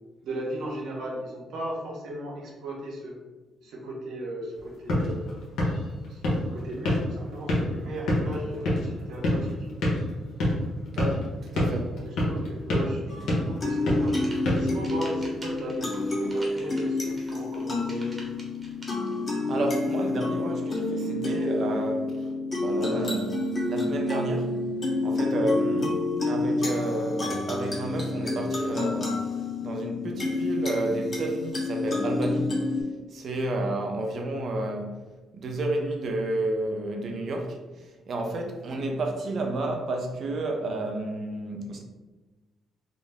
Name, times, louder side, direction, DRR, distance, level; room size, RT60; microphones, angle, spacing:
voice 1, 0.2-3.1 3.6-5.2 6.1-9.7 12.0-18.2 25.7-25.8, right 1 dB, 75° right, 1.0 m, -36 dB
sound 1, 4.5-15.4, left 1 dB, 80° left, 1.1 m, -29 dB
voice 2, 10.9-11.9 19.5-22.3 22.6-24.5 25.0-25.9 26.3-29.2 29.6-32.6 33.1-35.0 35.3-37.6 38.1-41.8, right 1 dB, 60° right, 0.6 m, -31 dB
sound 2, 13.1-32.8, left 2 dB, 35° left, 1.0 m, -29 dB
sound 3, 13.8-18.9, right 1 dB, 25° right, 1.0 m, -45 dB
3.8 x 2.0 x 3.4 m
cardioid pair, 90°, 0 cm